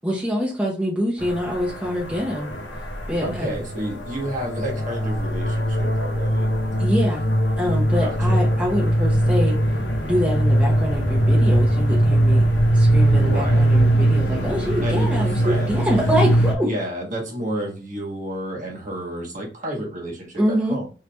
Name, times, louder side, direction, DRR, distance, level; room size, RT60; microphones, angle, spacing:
voice 1, 0.0-2.5 3.1-3.5 6.8-9.6 10.0-12.4 12.7-16.7 20.4-20.8, equal, 10° right, -4 dB, 0.9 m, -25 dB
sound 1, 1.2-16.5, right 1 dB, 70° left, 0.8 m, -20 dB
voice 2, 3.2-6.5 8.0-8.4 13.1-13.6 14.8-16.1 16.6-20.9, right 1 dB, 45° right, -2 dB, 1.4 m, -31 dB
3.3 x 2.8 x 3.4 m, 0.36 s
head